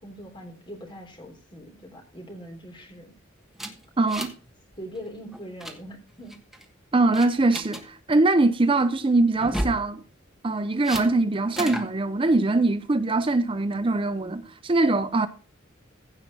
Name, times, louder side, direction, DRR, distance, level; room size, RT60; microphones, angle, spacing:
voice 1, 0.0-3.1 4.8-6.4, equal, 25° left, 3.5 m, -42 dB
sound 1, 3.6-4.5 4.7-5.0 5.3-5.8 6.3-6.7 7.1-7.8 9.4-9.8 10.8-11.1 11.6-11.9, right 1 dB, ahead, 1.3 m, -32 dB
voice 2, 4.0-4.3 6.9-10.0 10.4-15.3, right 2 dB, 25° right, 0.5 m, -22 dB
15.5 x 5.3 x 6.0 m
head